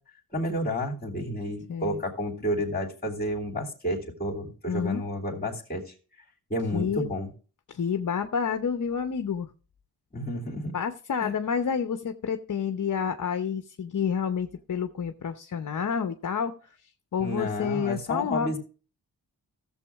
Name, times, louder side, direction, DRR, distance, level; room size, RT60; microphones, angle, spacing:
voice 1, 0.3-5.9 6.5-7.3 10.1-10.7 11.2-11.3 17.2-18.6, equal, 25° left, -2 dB, 3.0 m, -31 dB
voice 2, 1.7-2.0 4.7-5.0 6.7-7.1 7.7-9.5 10.7-16.5 17.1-18.5, left 7 dB, 50° left, 8 dB, 0.9 m, -29 dB
16.0 x 7.2 x 3.5 m, 0.38 s
wide cardioid pair, 115°, 39 cm